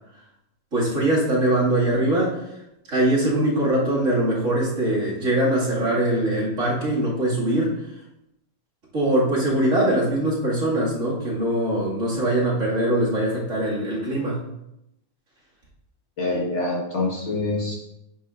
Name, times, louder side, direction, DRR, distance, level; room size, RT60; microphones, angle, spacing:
voice 1, 0.7-2.5 2.9-7.7 8.9-14.4, right 1 dB, 60° right, -6 dB, 2.6 m, -22 dB
voice 2, 16.2-17.8, left 2 dB, 55° left, -2 dB, 1.8 m, -25 dB
9.6 x 6.8 x 2.5 m, 0.86 s
omnidirectional pair, 1.5 m